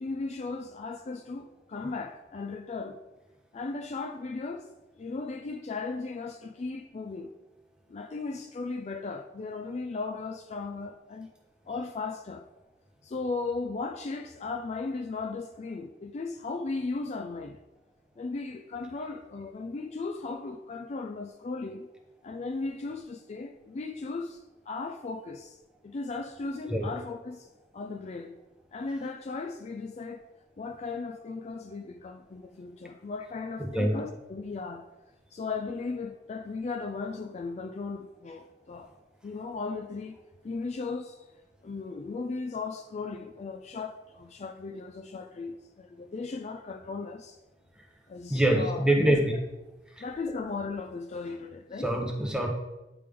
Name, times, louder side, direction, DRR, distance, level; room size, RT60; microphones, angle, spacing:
voice 1, 0.0-3.0 3.5-4.7 5.0-7.3 7.9-11.3 11.7-12.4 13.0-17.6 18.2-21.9 22.2-25.6 25.8-27.5 27.7-28.4 28.7-30.2 30.6-34.9 35.3-38.9 39.2-40.2 40.4-41.2 41.6-47.4 48.1-49.2 50.0-51.9, left 3 dB, 40° left, 0.4 m, -36 dB
voice 2, 33.6-34.0 48.3-49.3 50.0-50.1 51.8-52.5, right 1 dB, 5° right, 0.7 m, -25 dB
9.2 x 3.4 x 3.4 m
head